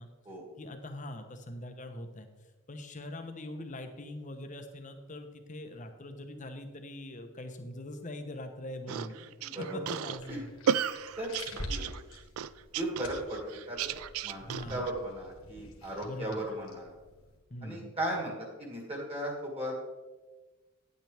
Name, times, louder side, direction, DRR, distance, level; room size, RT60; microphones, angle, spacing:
voice 1, 0.6-2.3 2.7-9.2 9.7-10.5 14.4-14.8 16.0-16.4 17.5-17.9, left 1 dB, 35° left, 6 dB, 0.9 m, -42 dB
sound 1, 8.9-14.9, right 8 dB, 75° right, 0.3 m, -34 dB
voice 2, 9.4-9.9 10.3-10.4 11.2-11.9 12.7-13.9 14.2-14.4 14.7-16.9 17.6-19.7, right 1 dB, 25° right, -1 dB, 2.2 m, -37 dB
sound 2, 10.1-17.4, left 1 dB, 70° left, 1.7 m, -47 dB
9.8 x 9.1 x 3.4 m, 1.2 s
head